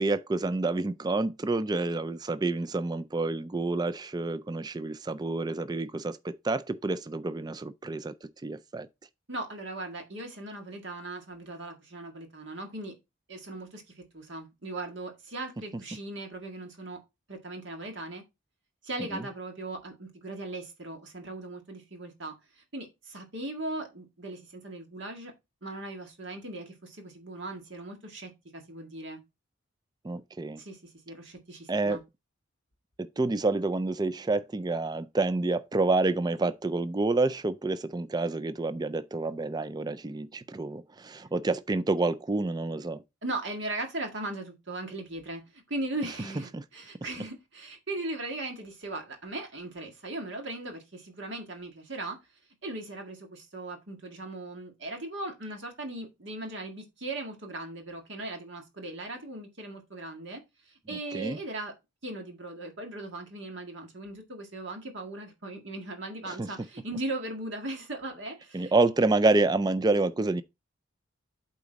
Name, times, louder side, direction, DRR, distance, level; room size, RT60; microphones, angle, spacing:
voice 1, 0.0-8.9 19.1-19.3 30.0-30.6 31.7-32.0 33.0-43.0 46.5-46.6 60.9-61.4 66.3-66.5 68.5-70.4, right 2 dB, 20° right, 0.3 m, -28 dB
voice 2, 9.3-12.9 13.3-17.0 17.3-18.2 18.8-25.3 25.6-29.2 30.6-32.0 43.2-52.2 52.6-61.7 62.0-68.7, right 2 dB, 55° right, 1.8 m, -38 dB
8.4 x 4.0 x 3.9 m
head